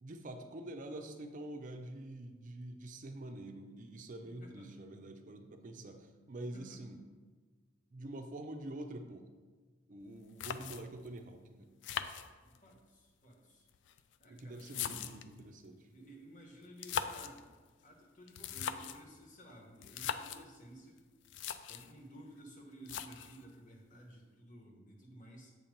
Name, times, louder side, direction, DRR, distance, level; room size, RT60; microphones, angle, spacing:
voice 1, 0.0-7.0 7.9-9.3 9.9-11.7 14.3-15.9, right 1 dB, 45° right, 6 dB, 0.5 m, -46 dB
voice 2, 4.1-4.7 6.3-6.8 12.4-13.7 14.2-15.1 15.9-17.5 17.8-21.0 21.7-25.5, right 1 dB, 45° left, 1 dB, 1.1 m, -55 dB
sound 1, 10.0-10.1 10.4-11.1 11.8-12.8 13.7-15.4 16.6-17.4 18.3-19.1 19.8-20.5 21.0-21.1 21.3-21.9 22.9-23.4, left 8 dB, 70° left, 0.3 m, -40 dB
7.9 x 2.9 x 5.2 m, 1.4 s
head